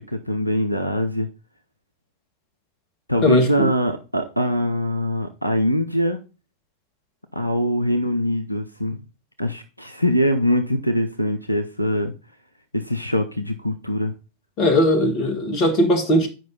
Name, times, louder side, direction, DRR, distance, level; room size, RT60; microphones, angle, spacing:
voice 1, 0.1-1.3 3.1-6.2 7.3-9.0 9.4-12.1 12.7-14.1, equal, 90° left, 0.6 m, -23 dB
voice 2, 3.2-3.7 14.6-16.3, left 1 dB, 35° left, 1.6 m, -19 dB
7.6 x 5.3 x 4.1 m
figure-of-eight pair, 90°, 0 cm